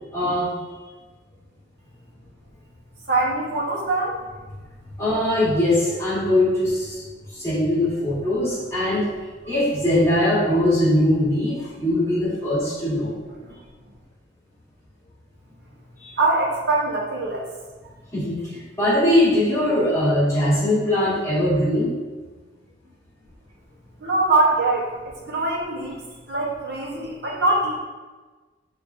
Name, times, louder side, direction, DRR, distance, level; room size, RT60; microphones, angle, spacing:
voice 1, 0.1-0.5 5.0-7.0 7.3-9.1 9.5-13.2 16.0-16.1 18.1-21.9, left 1 dB, 15° left, -9 dB, 1.2 m, -21 dB
voice 2, 3.1-4.2 13.4-13.6 16.2-17.5 24.0-27.8, right 2 dB, 55° right, -4 dB, 0.8 m, -23 dB
6.3 x 2.4 x 2.4 m, 1.3 s
head